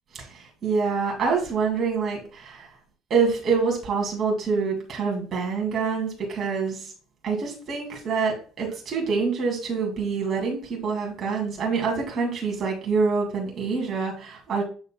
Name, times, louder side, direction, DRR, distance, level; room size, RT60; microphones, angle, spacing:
voice 1, 0.1-2.7 3.1-6.9 7.2-14.6, right 5 dB, 45° right, -2 dB, 2.3 m, -26 dB
8.0 x 6.6 x 2.2 m, 0.39 s
supercardioid pair, 95°, 0 cm